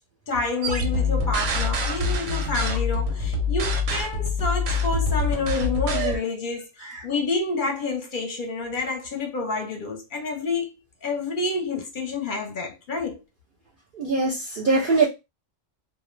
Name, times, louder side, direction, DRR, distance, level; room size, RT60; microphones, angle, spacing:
voice 1, 0.3-10.7 11.0-13.2, left 3 dB, 50° left, 0.7 m, -28 dB
sound 1, 0.6-6.2, left 3 dB, 90° right, 1.0 m, -25 dB
voice 2, 14.0-15.1, right 3 dB, 55° right, 0.6 m, -21 dB
2.3 x 2.1 x 3.0 m
omnidirectional pair, 1.2 m